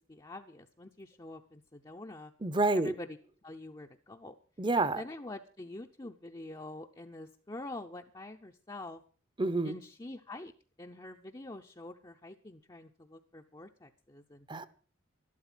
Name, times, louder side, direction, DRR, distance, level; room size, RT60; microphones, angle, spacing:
voice 1, 0.1-2.3 2.7-3.2 3.4-4.3 5.0-9.0 9.6-10.5 10.8-14.5, left 2 dB, 20° left, 0.6 m, -45 dB
voice 2, 2.4-2.9 4.6-5.0 9.4-9.8 14.5-14.7, right 2 dB, 25° right, 0.7 m, -28 dB
12.5 x 12.0 x 6.1 m
head